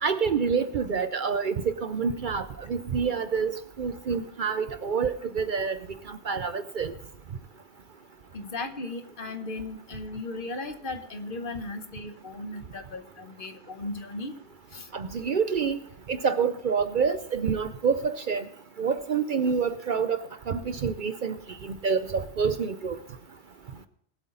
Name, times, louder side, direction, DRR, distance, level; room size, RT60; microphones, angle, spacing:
voice 1, 0.0-3.5 3.8-5.8 6.1-6.9 14.9-15.8 16.1-18.4 18.8-20.2 20.5-21.3 21.6-23.0, right 6 dB, 50° right, 11 dB, 0.7 m, -27 dB
voice 2, 8.3-14.3 14.7-14.9, left 2 dB, 50° left, 8 dB, 1.2 m, -36 dB
19.5 x 8.2 x 3.9 m, 0.68 s
omnidirectional pair, 1.2 m